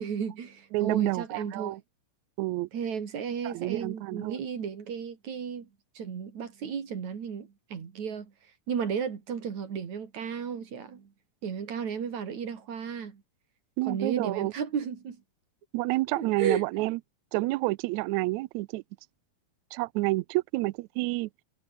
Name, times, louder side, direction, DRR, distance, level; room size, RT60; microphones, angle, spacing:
voice 1, 0.0-1.8 2.7-5.7 6.0-8.3 8.7-11.1 11.4-13.2 13.9-15.2 16.2-16.6, right 7 dB, 60° right, 4.0 m, -34 dB
voice 2, 0.7-1.8 2.4-2.7 3.4-4.4 13.8-14.5 15.7-17.0 17.3-18.8 19.7-21.3, right 20 dB, 90° right, 1.6 m, -29 dB
omnidirectional pair, 3.9 m